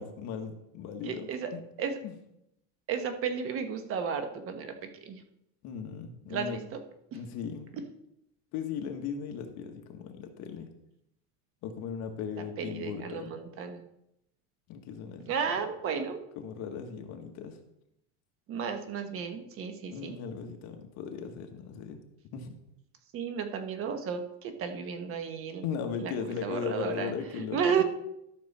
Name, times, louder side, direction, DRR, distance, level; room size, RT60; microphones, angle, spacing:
voice 1, 0.0-1.6 2.0-2.1 5.6-6.6 7.1-7.7 8.5-10.7 11.6-13.4 14.7-15.3 16.3-17.6 19.9-22.0 22.3-22.5 25.6-27.8, left 7 dB, 50° left, 4 dB, 1.6 m, -37 dB
voice 2, 1.0-1.5 1.8-2.0 2.9-4.7 5.0-5.2 6.3-6.6 12.6-13.8 15.3-16.2 18.5-20.2 23.1-25.6 26.0-26.1 26.4-27.8, right 6 dB, 40° right, 7 dB, 1.2 m, -33 dB
12.5 x 6.6 x 4.2 m, 0.80 s
cardioid pair, 150°, 34 cm